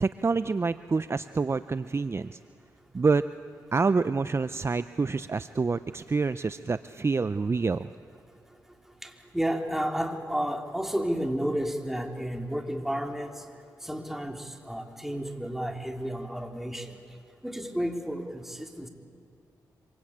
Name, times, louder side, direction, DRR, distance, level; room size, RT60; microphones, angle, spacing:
voice 1, 0.0-2.4 2.9-3.2 3.7-7.9, right 4 dB, 35° right, 13 dB, 0.6 m, -27 dB
voice 2, 9.0-13.4 13.8-17.0 17.4-18.9, equal, 5° right, 2 dB, 3.4 m, -32 dB
26.0 x 25.0 x 8.7 m, 2.3 s
cardioid pair, 55°, 8 cm